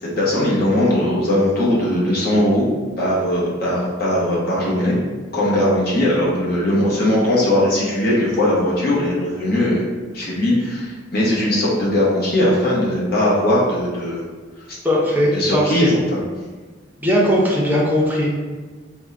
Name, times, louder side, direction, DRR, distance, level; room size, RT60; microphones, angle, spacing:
voice 1, 0.0-2.7 3.0-5.0 5.3-14.2 14.7-14.8 15.3-16.2, left 1 dB, 50° left, -6 dB, 0.9 m, -19 dB
voice 2, 14.8-15.8 17.0-18.3, equal, 10° right, -4 dB, 0.6 m, -18 dB
3.5 x 2.2 x 3.6 m, 1.4 s
head